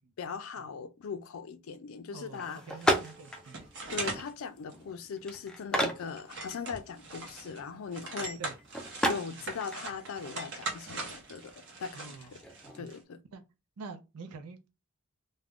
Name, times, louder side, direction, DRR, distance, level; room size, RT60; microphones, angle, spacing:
voice 1, 0.2-2.6 3.9-8.4 9.0-11.5 11.8-12.4 12.7-13.2, left 6 dB, 70° left, 0.4 m, -39 dB
voice 2, 2.1-3.6 8.4-8.6 11.9-12.4 12.8-12.9 13.3-13.4 13.8-14.7, right 4 dB, 90° right, 0.5 m, -46 dB
sound 1, 2.3-12.8, equal, 5° left, 0.3 m, -36 dB
sound 2, 2.8-4.3 4.7-4.8 5.3-5.5 5.8-7.6 7.9-13.0, right 3 dB, 55° right, 0.8 m, -41 dB
2.4 x 2.1 x 3.4 m
head